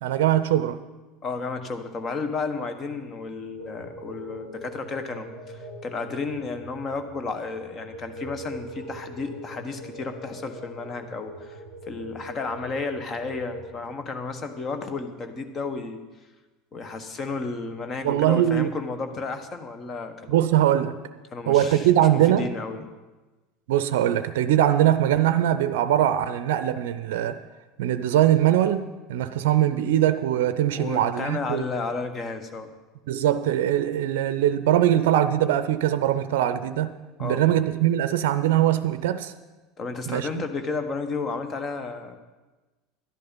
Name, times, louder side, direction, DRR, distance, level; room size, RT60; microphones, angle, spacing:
voice 1, 0.0-0.8 18.0-18.7 20.3-21.0 21.5-22.5 23.7-27.4 27.8-31.6 33.1-39.3 40.1-40.4, right 11 dB, 70° right, 0.5 m, -22 dB
voice 2, 1.2-11.6 11.9-16.0 16.7-20.4 21.3-22.1 22.4-22.8 30.7-32.7 37.2-37.4 39.8-42.2, left 4 dB, 35° left, 1.5 m, -32 dB
sound 1, 3.6-13.7, right 1 dB, 85° left, 4.9 m, -42 dB
12.0 x 10.5 x 5.5 m
hypercardioid pair, 75°, 0 cm